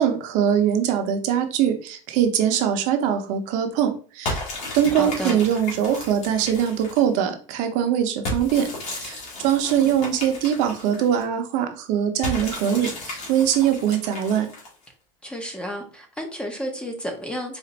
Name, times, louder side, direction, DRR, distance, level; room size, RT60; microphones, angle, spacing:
voice 1, 0.0-4.4 4.7-8.7 8.9-14.5, right 9 dB, 55° right, 6 dB, 0.7 m, -22 dB
sound 1, 4.3-7.2 8.3-11.2 12.2-14.9, left 2 dB, 45° left, 1.8 m, -34 dB
voice 2, 4.9-5.4 9.6-9.9 15.2-17.6, equal, 5° left, 3 dB, 0.7 m, -32 dB
4.2 x 2.5 x 4.0 m, 0.41 s
cardioid pair, 155°, 16 cm